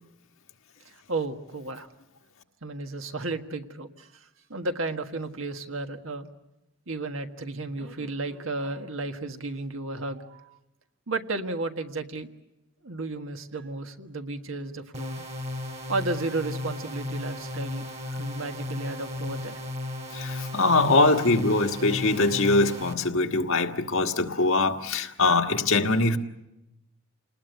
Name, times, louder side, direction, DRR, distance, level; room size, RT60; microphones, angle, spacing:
voice 1, 1.1-1.9 2.6-4.1 4.5-6.3 6.9-10.6 11.1-12.3 12.8-15.2 15.9-17.9 18.2-19.6, right 2 dB, 75° right, 6 dB, 1.6 m, -33 dB
sound 1, 14.9-22.9, left 1 dB, 30° right, 1.9 m, -35 dB
voice 2, 20.1-26.2, left 2 dB, 80° left, 4 dB, 1.5 m, -23 dB
28.5 x 20.0 x 8.2 m, 0.93 s
head